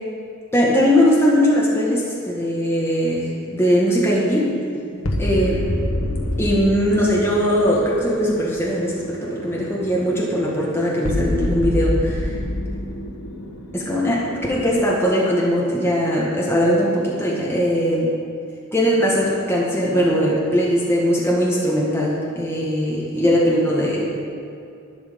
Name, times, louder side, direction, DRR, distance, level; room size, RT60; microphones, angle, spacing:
voice 1, 0.5-4.5 5.2-5.6 6.4-12.3 13.7-18.1 18.7-24.1, equal, 10° left, -5 dB, 1.8 m, -20 dB
sound 1, 4.4-14.9, left 1 dB, 80° left, 1.2 m, -28 dB
11.5 x 11.0 x 5.3 m, 2.6 s
head